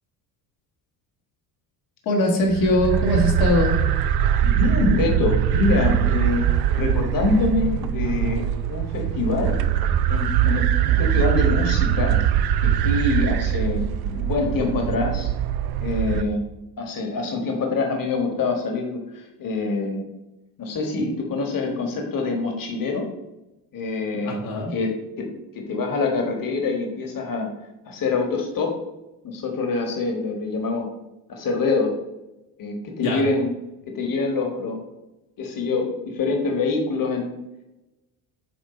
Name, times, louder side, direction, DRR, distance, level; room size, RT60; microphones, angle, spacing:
voice 1, 2.1-3.8 24.2-24.7 33.0-33.2, left 1 dB, 70° left, -2 dB, 1.8 m, -21 dB
sound 1, 2.5-16.2, right 10 dB, 50° right, 0.6 m, -22 dB
voice 2, 4.4-6.4 6.7-9.5 10.1-12.2 12.6-15.3 15.8-16.4 16.8-20.0 20.6-23.1 23.7-24.4 24.7-25.3 25.5-27.5 27.9-28.7 29.2-30.9 31.3-31.9 32.6-33.5 33.9-34.8 35.4-37.3, left 3 dB, 40° left, 2 dB, 1.6 m, -25 dB
8.2 x 3.1 x 4.3 m, 0.98 s
hypercardioid pair, 65°, 50 cm